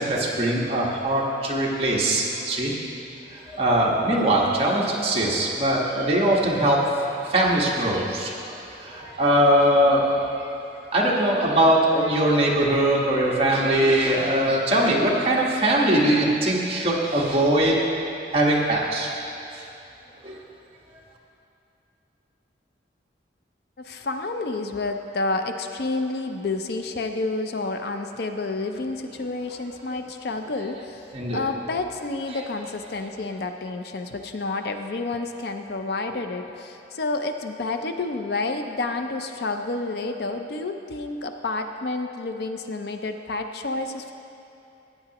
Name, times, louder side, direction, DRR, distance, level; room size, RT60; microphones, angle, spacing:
voice 1, 0.0-2.7 3.3-8.3 8.7-10.5 10.9-17.8 18.3-19.1 19.5-19.6 20.2-20.3 31.1-31.4 32.3-32.4, right 1 dB, 30° right, -4 dB, 1.4 m, -21 dB
voice 2, 23.8-31.0 31.3-44.1, left 3 dB, 55° left, 6 dB, 0.5 m, -29 dB
15.0 x 9.2 x 3.0 m, 2.8 s
head